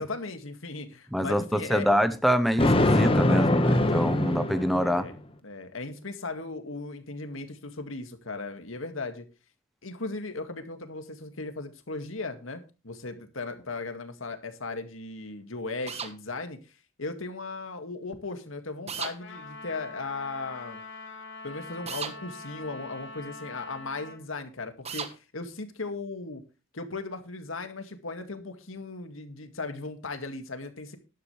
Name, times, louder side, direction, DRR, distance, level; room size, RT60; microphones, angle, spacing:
voice 1, 0.0-1.9 4.8-5.1 5.4-9.3 9.8-16.6 17.0-20.8 21.4-26.4 26.7-31.0, left 3 dB, 80° left, 2.1 m, -37 dB
voice 2, 1.1-5.0, equal, ahead, 0.8 m, -25 dB
Thunder, 2.6-5.1, left 1 dB, 25° left, 1.4 m, -23 dB
sound 1, 15.9-16.1 18.9-19.2 21.9-22.1 24.9-25.1, right 6 dB, 30° right, 1.4 m, -34 dB
Trumpet, 19.2-24.2, left 3 dB, 65° left, 3.3 m, -44 dB
12.5 x 11.5 x 3.3 m
head